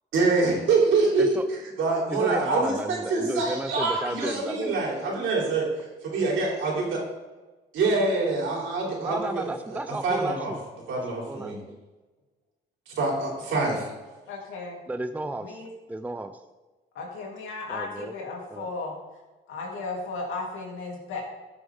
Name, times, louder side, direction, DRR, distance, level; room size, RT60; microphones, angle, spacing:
voice 1, 0.1-5.7 6.1-7.0 7.7-10.5 10.9-11.6 12.9-13.9, right 3 dB, 75° right, -2 dB, 3.5 m, -25 dB
voice 2, 2.1-4.7 9.0-10.6 11.3-11.8 14.9-15.6 15.9-16.4 17.7-18.1 18.5-18.7, right 2 dB, 10° right, 9 dB, 0.5 m, -33 dB
voice 3, 14.3-14.8 15.4-15.7 16.9-18.9 19.5-21.2, left 3 dB, 85° left, -1 dB, 2.9 m, -35 dB
14.0 x 6.9 x 3.7 m, 1.2 s
cardioid pair, 90°, 20 cm